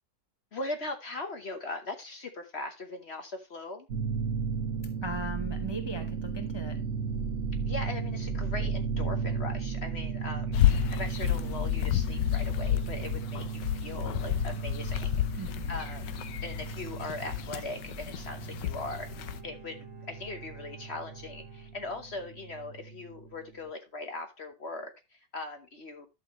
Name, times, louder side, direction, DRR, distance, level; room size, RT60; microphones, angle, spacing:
voice 1, 0.5-3.9 7.6-19.1 19.4-19.8 20.1-26.1, left 2 dB, 45° left, 1.1 m, -40 dB
sound 1, 3.9-23.4, right 5 dB, 45° right, 1.6 m, -35 dB
voice 2, 5.0-6.8 15.4-15.8, right 2 dB, 20° right, 0.7 m, -38 dB
sound 2, 10.5-19.4, left 13 dB, 85° left, 1.4 m, -31 dB
Bowed string instrument, 18.7-22.5 22.8-22.9, right 2 dB, 70° left, 6.9 m, -55 dB
11.5 x 6.7 x 3.0 m
omnidirectional pair, 1.8 m